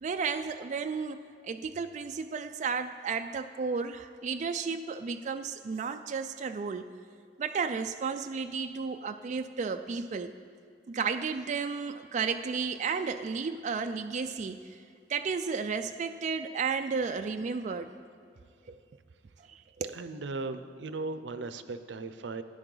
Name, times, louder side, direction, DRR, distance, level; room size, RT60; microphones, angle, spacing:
voice 1, 0.0-6.9 7.4-10.3 10.9-14.8 15.1-17.9 18.7-18.8 19.5-19.9, right 5 dB, 40° right, 7 dB, 0.3 m, -33 dB
voice 2, 19.9-22.4, right 3 dB, 85° right, 11 dB, 0.6 m, -37 dB
17.0 x 9.6 x 3.9 m, 2.3 s
head